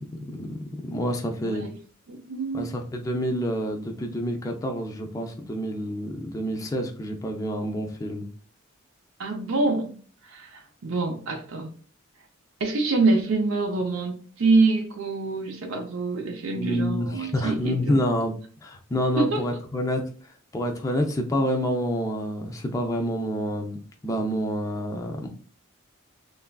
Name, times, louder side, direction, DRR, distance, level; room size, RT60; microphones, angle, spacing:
voice 1, 0.1-1.7 2.5-8.3 16.6-18.3 18.6-20.0 20.5-23.8 24.0-25.3, equal, 15° left, 0.4 m, -28 dB
voice 2, 1.4-1.8 2.1-2.7 9.2-9.9 10.2-11.7 12.6-18.1 19.2-19.4, right 3 dB, 75° right, 0.5 m, -26 dB
3.3 x 2.4 x 2.2 m
head